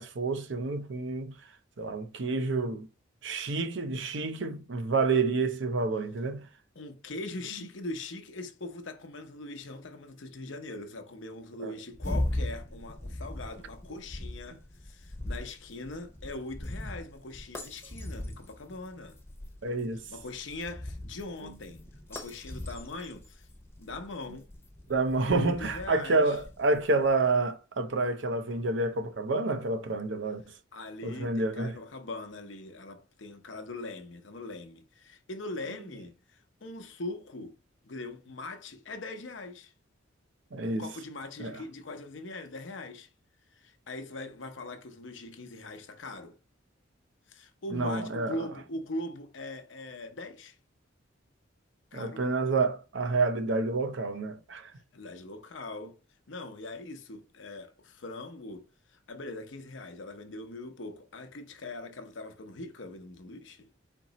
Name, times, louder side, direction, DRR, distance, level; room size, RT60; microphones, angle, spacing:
voice 1, 0.0-1.4 1.8-2.9 3.2-6.5 11.6-11.7 19.6-20.0 24.9-30.4 31.0-31.8 40.5-40.9 41.4-41.6 47.7-48.4 51.9-54.7, right 3 dB, 65° right, 0.6 m, -29 dB
voice 2, 6.7-19.2 20.1-21.8 22.1-23.5 23.8-24.5 25.3-26.4 30.7-37.6 37.8-39.7 40.7-43.1 43.6-46.4 47.3-50.6 51.9-52.2 54.9-56.0 56.3-58.6 58.9-63.7, left 2 dB, 70° left, 0.7 m, -41 dB
sound 1, 11.9-27.1, left 1 dB, 15° left, 0.8 m, -39 dB
4.4 x 2.9 x 4.0 m
head